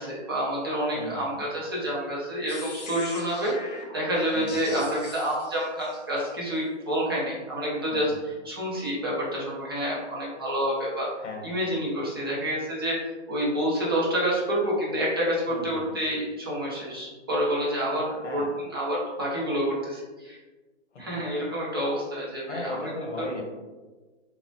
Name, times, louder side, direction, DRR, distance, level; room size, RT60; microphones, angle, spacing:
voice 1, 0.0-3.5 3.9-11.1 11.4-13.0 13.3-20.4 21.0-22.9 23.2-23.3, equal, 20° right, -6 dB, 0.4 m, -28 dB
voice 2, 0.9-1.5 4.3-4.6 7.9-8.0 11.2-11.6 15.5-16.0 18.2-18.5 20.9-21.1 22.4-23.4, left 2 dB, 70° left, 1 dB, 0.8 m, -36 dB
sound 1, 2.5-6.2, left 3 dB, 35° left, 0.5 m, -42 dB
3.1 x 2.0 x 2.7 m, 1.3 s
hypercardioid pair, 155°, 36 cm